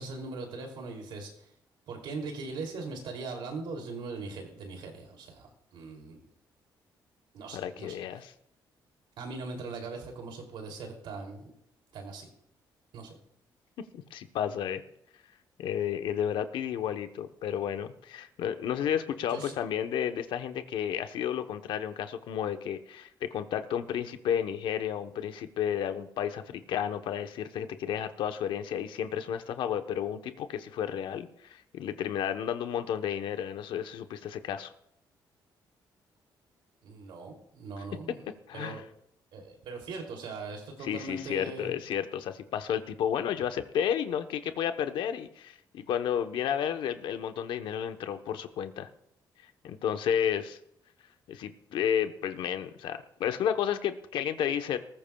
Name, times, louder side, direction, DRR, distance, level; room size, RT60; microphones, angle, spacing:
voice 1, 0.0-1.5 1.9-6.2 7.3-8.0 9.2-11.5 11.9-12.3 12.9-13.2 19.3-19.5 36.8-38.2 38.5-38.8 39.3-41.7, right 3 dB, 85° right, 2 dB, 2.9 m, -40 dB
voice 2, 7.5-8.3 13.9-14.8 15.6-34.7 37.8-37.9 38.5-38.8 40.8-48.9 49.4-50.6 51.3-54.8, left 9 dB, 85° left, 8 dB, 1.0 m, -32 dB
19.0 x 14.5 x 2.3 m, 0.76 s
cardioid pair, 100°, 8 cm